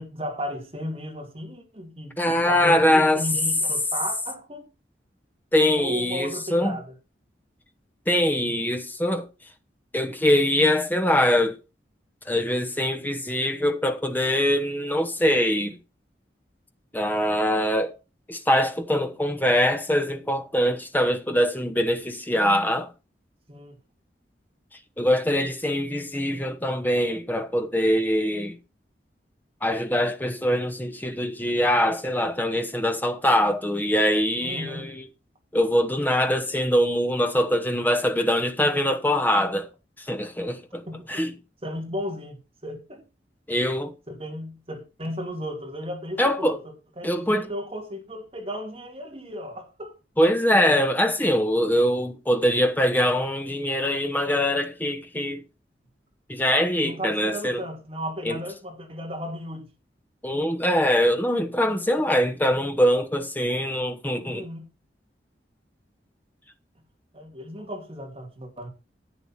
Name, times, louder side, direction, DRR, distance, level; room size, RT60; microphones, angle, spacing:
voice 1, 0.0-4.7 5.7-6.9 23.5-23.8 34.4-35.0 40.9-41.2 41.6-42.4 42.6-43.0 44.1-46.6 47.0-49.9 56.8-59.7 64.2-64.7 67.1-68.7, equal, 35° right, 2.8 m, -34 dB
voice 2, 2.2-3.2 5.5-6.8 8.1-9.3 9.9-11.6 12.3-15.8 16.9-17.9 18.3-22.9 25.0-28.6 29.6-35.1 35.5-39.7 40.0-40.8 41.1-41.3 43.5-43.9 46.2-46.6 47.0-47.5 50.2-55.4 56.3-57.6 58.2-58.4 60.2-64.5, equal, 10° left, 1.0 m, -23 dB
11.0 x 8.3 x 4.4 m
head